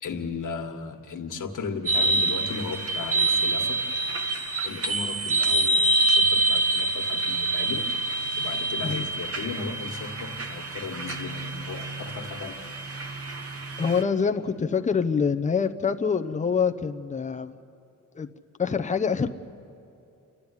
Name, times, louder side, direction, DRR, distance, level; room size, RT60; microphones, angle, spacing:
voice 1, 0.0-3.8 4.6-7.9 8.4-12.5, left 5 dB, 65° left, 3 dB, 1.7 m, -36 dB
sound 1, 1.9-14.0, right 2 dB, 45° right, 1.3 m, -26 dB
voice 2, 13.8-17.6 18.1-18.3 18.6-19.3, left 6 dB, 20° left, 7 dB, 0.7 m, -25 dB
30.0 x 12.5 x 9.8 m, 2.8 s
wide cardioid pair, 165°, 32 cm